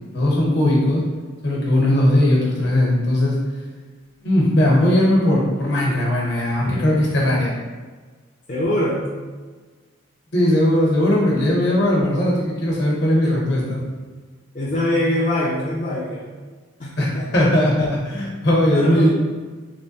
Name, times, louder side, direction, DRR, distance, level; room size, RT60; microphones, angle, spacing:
voice 1, 0.1-1.0 1.4-3.4 4.2-7.5 10.3-13.8 17.0-19.1, left 1 dB, 55° left, -3 dB, 1.0 m, -18 dB
voice 2, 8.5-9.1 14.5-16.3 16.8-17.5 18.7-19.1, left 1 dB, 35° left, -6 dB, 0.4 m, -23 dB
3.2 x 3.1 x 2.9 m, 1.4 s
head